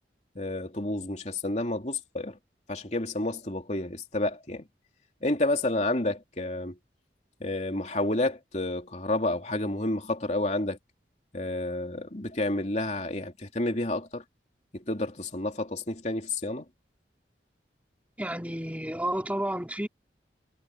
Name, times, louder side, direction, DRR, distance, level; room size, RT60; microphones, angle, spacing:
voice 1, 0.3-2.4 2.7-4.6 5.2-6.7 7.4-10.8 11.3-14.2 14.7-16.7, left 2 dB, 40° left, 3.3 m, -30 dB
voice 2, 18.2-19.9, right 1 dB, 10° right, 4.3 m, -31 dB
head